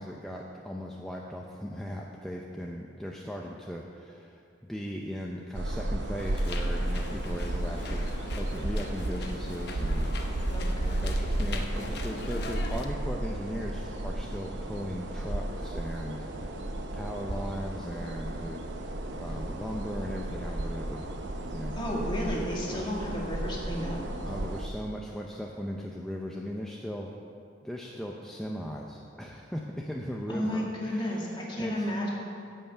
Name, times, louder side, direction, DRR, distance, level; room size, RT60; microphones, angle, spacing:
voice 1, 0.0-4.4 4.7-8.1 8.4-10.5 11.0-16.7 16.9-18.7 19.1-21.1 21.5-21.8 22.7-23.0 24.2-27.1 27.6-31.7, equal, 5° left, -2 dB, 0.6 m, -38 dB
sound 1, 5.5-24.7, right 1 dB, 70° right, 0.8 m, -33 dB
sound 2, 6.2-12.9, left 2 dB, 60° left, 0.9 m, -42 dB
voice 2, 10.4-11.0 21.7-24.0 30.3-32.1, equal, 25° left, -3 dB, 2.0 m, -32 dB
16.0 x 5.6 x 5.7 m, 2.4 s
head